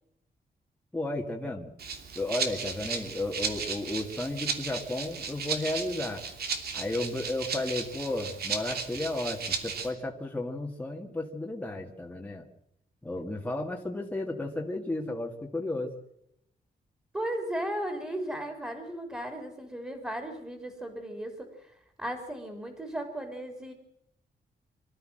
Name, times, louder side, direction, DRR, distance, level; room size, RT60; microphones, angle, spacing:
voice 1, 0.9-1.7 2.2-6.2 6.7-12.4 13.0-15.9, left 2 dB, 10° left, 0 dB, 2.1 m, -33 dB
Rattle (instrument), 1.8-9.9, right 5 dB, 75° right, 2.9 m, -35 dB
voice 2, 17.1-21.7 22.0-23.7, right 1 dB, 10° right, 4 dB, 3.7 m, -36 dB
25.0 x 13.5 x 7.8 m, 0.78 s
wide cardioid pair, 170°, 16 cm